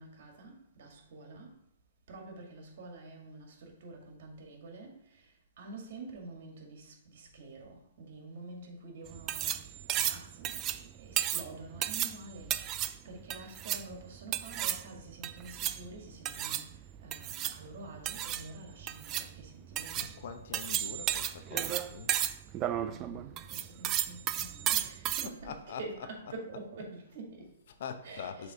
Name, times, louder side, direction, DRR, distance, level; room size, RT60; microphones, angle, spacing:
voice 1, 0.0-1.5 2.1-5.3 5.6-12.6 13.0-16.6 17.0-20.2 22.8-25.5 25.8-27.5 28.0-28.5, right 2 dB, 55° right, 2.1 m, -47 dB
sound 1, 9.1-25.3, right 12 dB, 30° right, 0.4 m, -34 dB
voice 2, 19.9-22.2 25.1-26.6 27.7-28.5, left 6 dB, 60° left, 0.8 m, -44 dB
6.9 x 3.3 x 5.0 m
hypercardioid pair, 140°, 0 cm